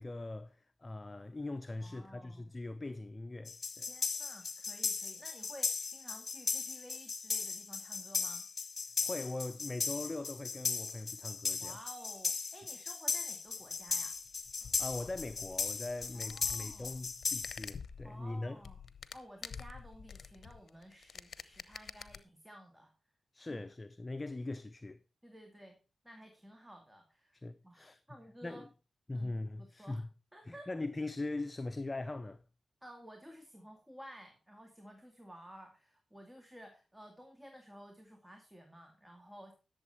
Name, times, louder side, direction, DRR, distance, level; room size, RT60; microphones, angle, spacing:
voice 1, 0.0-3.9 9.0-11.8 14.8-18.6 23.3-25.0 27.3-28.0 28.4-28.7 29.1-30.1 30.5-32.4, left 2 dB, 30° left, 0.7 m, -41 dB
voice 2, 1.7-2.5 3.8-8.5 11.5-14.2 16.1-17.0 18.0-18.8 19.1-22.9 23.4-23.7 25.2-25.8 26.0-27.4 27.6-28.7 29.1-29.3 29.6-30.0 30.3-30.7 32.8-39.5, equal, 10° right, 2.2 m, -54 dB
sound 1, 3.5-17.7, left 5 dB, 50° left, 1.5 m, -37 dB
sound 2, 13.6-22.2, left 6 dB, 70° left, 0.8 m, -49 dB
11.5 x 7.2 x 4.5 m
cardioid pair, 50°, 0 cm